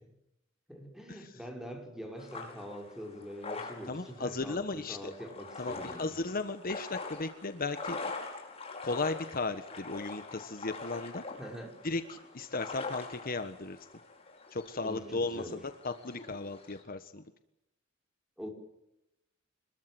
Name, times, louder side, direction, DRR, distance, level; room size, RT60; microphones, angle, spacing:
voice 1, 0.7-6.2 11.4-11.7 14.8-15.6 18.4-18.5, equal, 5° right, 3 dB, 5.6 m, -44 dB
sound 1, 2.2-16.8, left 3 dB, 30° left, 5.8 m, -44 dB
voice 2, 3.9-5.1 5.6-8.0 8.8-11.2 11.8-13.8 14.5-15.6 15.8-17.2, left 3 dB, 45° left, 9 dB, 1.4 m, -35 dB
27.0 x 21.5 x 7.9 m, 0.88 s
head